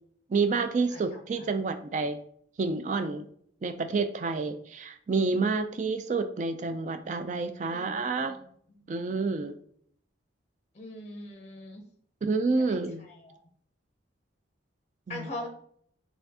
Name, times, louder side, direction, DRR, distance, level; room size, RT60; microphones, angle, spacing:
voice 1, 0.3-2.2 2.6-3.3 3.6-8.3 8.9-9.6 12.2-13.0 15.1-15.3, right 4 dB, 40° right, 9 dB, 0.3 m, -29 dB
voice 2, 7.6-8.2 8.7-8.9 10.8-11.8 12.6-13.4 15.1-15.5, left 1 dB, 35° left, 3 dB, 0.6 m, -42 dB
4.2 x 3.4 x 2.7 m, 0.64 s
head